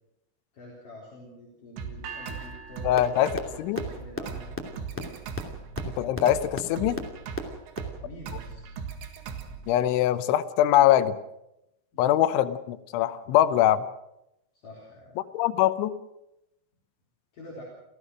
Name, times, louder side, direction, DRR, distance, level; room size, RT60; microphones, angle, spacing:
voice 1, 0.5-4.5 4.9-5.1 8.0-8.6 11.9-12.5 14.5-15.2 17.3-17.6, left 1 dB, 45° left, -4 dB, 5.3 m, -47 dB
sound 1, 1.8-9.8, right 6 dB, 70° right, 4.0 m, -39 dB
sound 2, 2.0-4.1, right 5 dB, 85° right, 5.2 m, -44 dB
voice 2, 2.9-3.3 3.6-3.8 5.9-7.0 9.7-11.2 12.0-13.9 15.3-15.9, left 12 dB, 80° left, 12 dB, 3.3 m, -22 dB
sound 3, 3.0-3.1 3.4-3.5 3.8-3.9 4.1-4.2 4.5-4.6 4.9-5.0 5.3-5.4 5.7-5.8 6.1-6.2 6.5-6.6 6.9-7.0 7.4-7.5 7.8-7.9, left 1 dB, 15° left, 0.5 m, -31 dB
29.0 x 15.5 x 6.3 m, 0.88 s
omnidirectional pair, 5.4 m